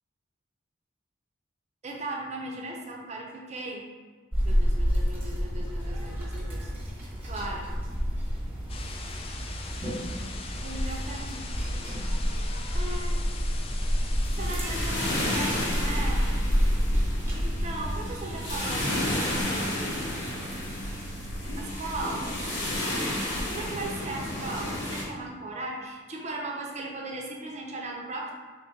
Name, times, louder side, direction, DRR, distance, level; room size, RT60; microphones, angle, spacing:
voice 1, 1.8-3.8 4.4-6.7 7.2-7.7 10.6-11.5 12.7-13.2 14.4-16.3 17.3-20.0 21.5-22.6 23.5-28.3, right 2 dB, 35° right, -1 dB, 0.6 m, -37 dB
sound 1, 4.3-19.4, equal, 10° right, 1.0 m, -29 dB
sound 2, 8.7-15.7, left 4 dB, 30° left, 0.3 m, -42 dB
sound 3, 14.3-25.0, left 1 dB, 85° left, 1.3 m, -32 dB
3.5 x 2.9 x 3.6 m, 1.5 s
head